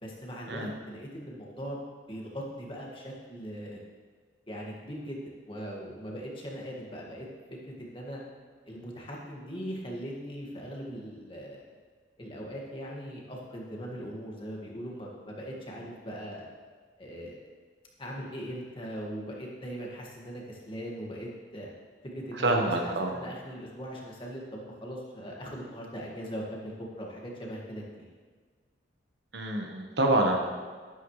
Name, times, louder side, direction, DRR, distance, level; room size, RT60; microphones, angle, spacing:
voice 1, 0.0-1.8 2.1-3.8 4.5-7.3 7.8-8.2 8.6-11.7 12.2-16.5 17.0-17.4 18.0-21.7 22.1-28.1, equal, 25° left, -2 dB, 2.0 m, -40 dB
voice 2, 22.4-23.1 29.3-30.4, right 2 dB, 65° right, 1 dB, 1.4 m, -26 dB
12.5 x 12.0 x 3.3 m, 1.5 s
head